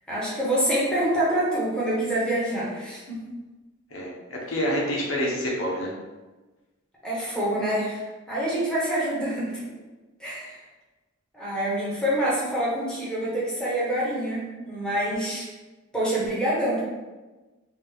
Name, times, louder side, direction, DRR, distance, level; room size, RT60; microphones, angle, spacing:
voice 1, 0.1-3.3 7.0-8.0 8.3-9.7 10.2-10.5 11.3-15.4 15.9-16.8, right 1 dB, 5° left, -8 dB, 1.3 m, -26 dB
voice 2, 3.9-5.9, equal, 80° left, -3 dB, 1.0 m, -27 dB
4.1 x 2.5 x 3.6 m, 1.2 s
head